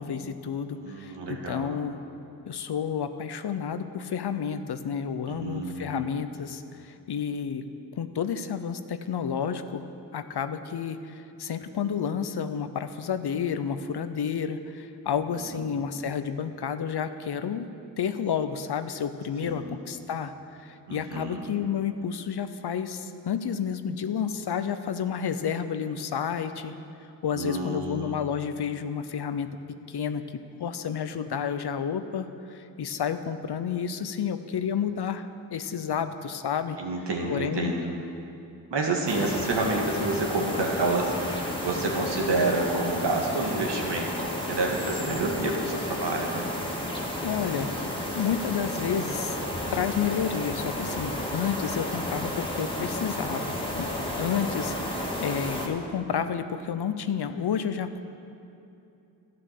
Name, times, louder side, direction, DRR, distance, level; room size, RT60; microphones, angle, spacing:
voice 1, 0.0-2.0 2.5-7.7 8.0-9.9 10.1-17.7 18.0-20.3 20.6-26.7 27.2-29.5 29.9-30.2 30.6-36.8 37.3-37.7 47.2-47.7 48.1-49.4 49.7-53.9 54.2-58.0, left 7 dB, 65° left, 10 dB, 0.8 m, -30 dB
voice 2, 0.7-1.7 5.3-6.1 15.4-15.6 19.4-19.7 20.9-21.4 27.3-28.2 36.8-37.9 38.7-46.5, right 2 dB, 75° right, 0 dB, 1.9 m, -29 dB
sound 1, 39.1-55.7, left 1 dB, 10° left, 2.4 m, -32 dB
11.5 x 9.7 x 6.7 m, 2.8 s
cardioid pair, 45°, 41 cm